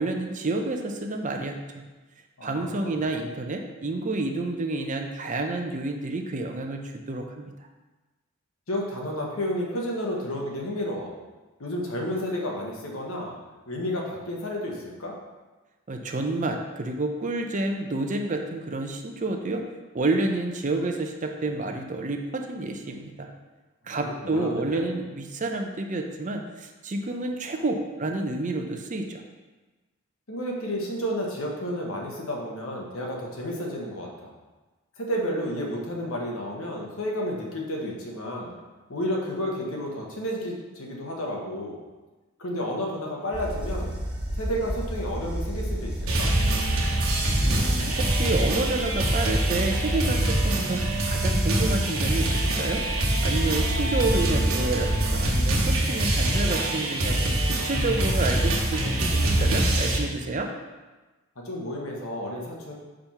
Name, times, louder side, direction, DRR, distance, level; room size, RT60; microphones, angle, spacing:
voice 1, 0.0-1.8 2.4-7.5 15.9-19.6 19.9-23.3 23.9-29.2 47.4-50.8 51.1-52.8 53.2-60.5, right 2 dB, 35° right, 4 dB, 0.6 m, -29 dB
voice 2, 2.4-3.0 8.7-11.1 11.6-13.4 13.7-15.2 23.9-24.8 30.3-34.3 35.0-38.5 38.9-41.8 42.4-44.0 44.3-46.3 61.4-62.7, equal, 75° left, -1 dB, 1.3 m, -31 dB
sound 1, 43.3-50.7 52.5-55.9, equal, 5° right, 1.3 m, -32 dB
sound 2, 46.1-60.0, right 1 dB, 75° right, 1.1 m, -24 dB
5.1 x 4.4 x 5.7 m, 1.2 s
head